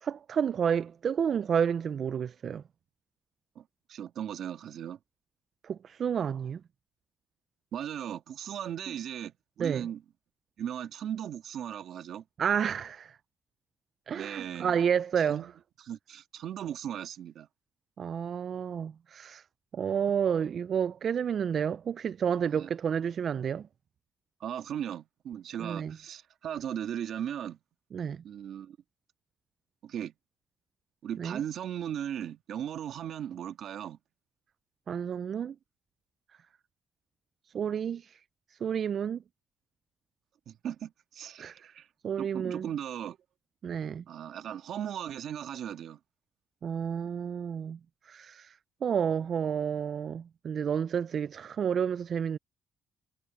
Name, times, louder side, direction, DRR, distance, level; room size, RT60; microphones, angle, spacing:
voice 1, 0.0-2.6 5.6-6.6 9.6-9.9 12.4-13.2 14.1-15.5 18.0-19.4 19.7-23.7 25.6-26.0 27.9-28.2 31.2-31.4 34.9-35.6 37.5-38.2 38.5-39.2 41.4-41.7 42.0-42.7 43.6-44.0 46.6-47.8 48.1-52.4, right 7 dB, 55° right, 0.3 m, -30 dB
voice 2, 3.9-5.0 7.7-10.0 10.6-12.2 14.1-14.8 15.2-15.5 15.8-17.5 22.5-22.7 24.4-27.6 28.2-28.8 29.8-30.1 31.0-34.0 40.5-41.9 42.2-43.2 44.1-46.0, right 9 dB, 70° right, 1.7 m, -37 dB
cardioid pair, 90°, 0 cm